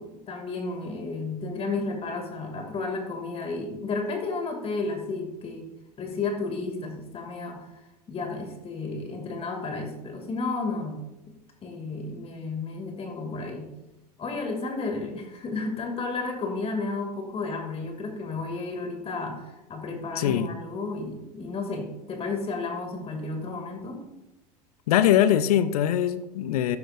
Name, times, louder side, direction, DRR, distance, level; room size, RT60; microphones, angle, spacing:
voice 1, 0.0-5.7 6.0-7.7 8.1-11.1 11.6-13.7 14.2-24.0, left 3 dB, 30° left, 3 dB, 2.4 m, -32 dB
voice 2, 20.2-20.5 24.9-26.8, left 11 dB, 65° left, 14 dB, 0.7 m, -22 dB
13.0 x 12.0 x 2.6 m, 0.95 s
figure-of-eight pair, 80°, 21 cm